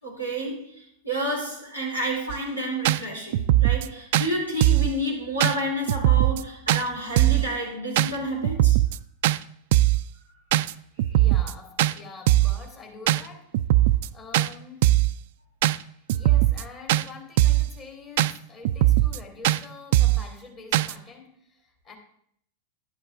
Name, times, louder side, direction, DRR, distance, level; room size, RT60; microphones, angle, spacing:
voice 1, 0.0-8.8, right 1 dB, 85° left, -3 dB, 4.4 m, -30 dB
sound 1, 2.3-2.4 2.8-3.0 3.3-3.9 4.1-4.3 4.6-4.9 5.4-5.6 5.9-6.4 6.7-6.8 7.2-7.5 8.0-8.1 8.4-9.0 9.2-9.4 9.7-10.0 10.5-10.7 11.0-11.5 11.8-11.9 12.3-12.6 13.1-13.2 13.5-14.1 14.3-14.5 14.8-15.1 15.6-15.8 16.1-16.6 16.9-17.0 17.4-17.7 18.2-18.3 18.6-19.2 19.4-19.6 19.9-20.2 20.7-20.9, right 15 dB, 50° right, 0.3 m, -20 dB
voice 2, 11.1-13.6 13.8-15.0 15.7-21.9, left 5 dB, 30° left, 1 dB, 3.2 m, -45 dB
11.5 x 10.5 x 3.6 m, 0.65 s
figure-of-eight pair, 90°, 0 cm